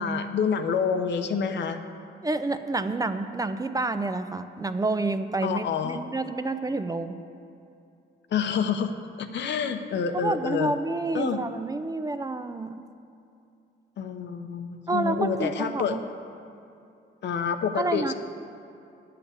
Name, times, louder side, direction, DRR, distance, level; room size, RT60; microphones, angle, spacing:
voice 1, 0.0-1.8 5.4-6.0 8.3-10.7 11.1-11.4 14.0-16.0 17.2-18.1, left 6 dB, 65° left, 8 dB, 0.9 m, -28 dB
voice 2, 2.2-7.2 10.1-12.8 14.9-16.0 17.8-18.1, right 3 dB, 20° right, 9 dB, 0.5 m, -29 dB
10.0 x 5.8 x 8.4 m, 2.7 s
cardioid pair, 90°, 20 cm